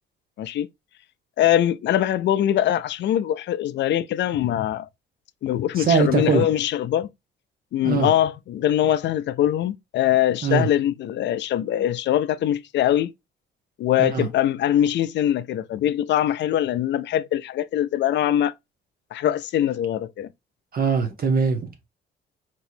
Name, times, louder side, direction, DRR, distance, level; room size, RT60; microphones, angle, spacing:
voice 1, 0.4-0.7 1.4-4.9 5.4-7.1 7.7-13.1 13.8-18.5 19.1-20.3, left 11 dB, 65° left, 0.4 m, -22 dB
voice 2, 5.8-6.5 7.8-8.1 10.4-10.7 14.0-14.3 20.7-21.9, right 5 dB, 50° right, 0.9 m, -22 dB
4.2 x 3.0 x 2.6 m
cardioid pair, 90°, 20 cm